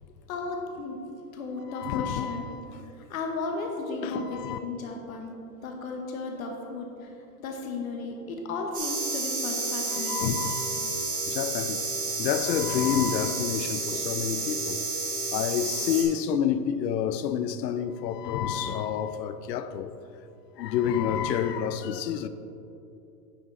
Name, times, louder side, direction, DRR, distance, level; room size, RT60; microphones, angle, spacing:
voice 1, 0.3-1.0 1.3-2.5 2.7-5.4 5.6-10.5, left 3 dB, 55° left, 1.0 m, -35 dB
voice 2, 1.7-2.6 4.0-4.6 9.9-10.9 11.3-11.9 12.2-14.8 15.3-19.9 20.6-22.3, left 9 dB, 80° left, 0.6 m, -29 dB
sound 1, 8.7-16.0, right 3 dB, 15° right, 1.2 m, -31 dB
9.8 x 5.5 x 4.0 m
supercardioid pair, 170°, 49 cm